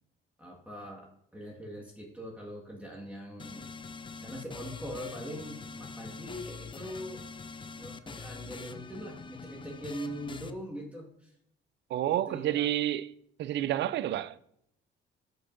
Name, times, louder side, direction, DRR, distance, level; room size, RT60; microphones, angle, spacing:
voice 1, 0.4-3.7 4.2-7.2 7.8-11.3 12.0-12.7, equal, 5° right, 1.6 m, -42 dB
sound 1, 3.4-10.5, left 4 dB, 25° left, 0.5 m, -44 dB
voice 2, 11.9-13.1 13.4-14.4, right 12 dB, 65° right, 0.4 m, -29 dB
12.5 x 5.1 x 2.6 m
cardioid pair, 90°, 20 cm